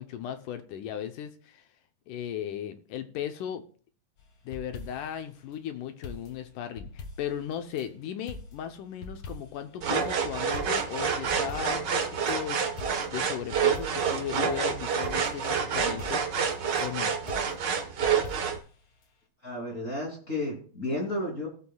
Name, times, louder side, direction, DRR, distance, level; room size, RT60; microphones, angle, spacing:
voice 1, 0.0-1.6 2.1-3.6 4.5-12.6 13.1-16.2 16.8-17.1, left 10 dB, 75° left, 8 dB, 2.2 m, -36 dB
sound 1, 4.2-5.2 6.0-7.9 8.3-9.7 10.0-10.1 10.5-12.4 12.8-14.2 14.5-14.6 15.0-16.8 17.3-18.7 19.0-19.1, left 3 dB, 55° left, 1.6 m, -44 dB
sound 2, 9.8-18.6, right 6 dB, 90° right, 0.9 m, -28 dB
voice 2, 19.4-21.5, left 1 dB, 25° left, -3 dB, 3.2 m, -32 dB
17.5 x 8.0 x 2.3 m, 0.42 s
omnidirectional pair, 4.0 m